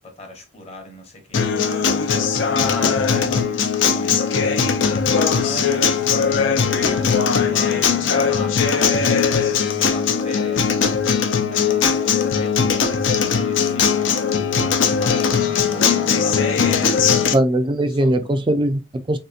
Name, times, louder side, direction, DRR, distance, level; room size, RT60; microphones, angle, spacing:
voice 1, 0.0-1.8 2.5-11.0 11.3-14.7 14.9-17.4 17.9-18.4, left 2 dB, 30° left, 0.8 m, -38 dB
Acoustic guitar, 1.3-17.3, left 6 dB, 75° left, 0.5 m, -19 dB
voice 2, 17.3-19.2, right 1 dB, 25° right, 0.3 m, -20 dB
3.4 x 2.8 x 2.3 m
head